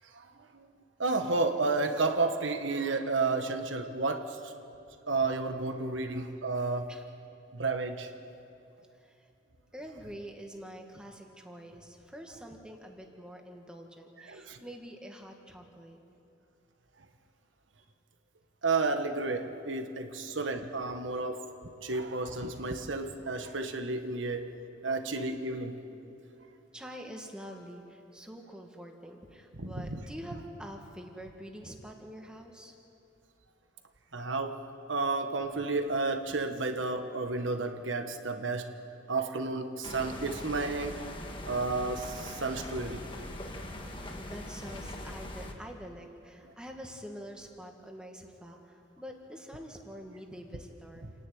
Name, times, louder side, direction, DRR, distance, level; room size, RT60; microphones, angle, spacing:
voice 1, 0.1-0.7 1.0-4.5 5.1-6.9 7.5-8.1 14.3-14.6 18.6-21.5 21.8-24.5 24.8-25.7 29.6-30.0 34.1-38.7 39.1-41.0 41.4-43.0, right 3 dB, 90° right, 6 dB, 1.3 m, -31 dB
voice 2, 8.9-9.3 9.7-16.0 26.7-32.7 44.2-51.1, equal, 5° right, 2 dB, 1.7 m, -46 dB
sound 1, 39.8-45.5, left 1 dB, 25° left, 1.6 m, -41 dB
28.5 x 10.5 x 9.3 m, 2.7 s
head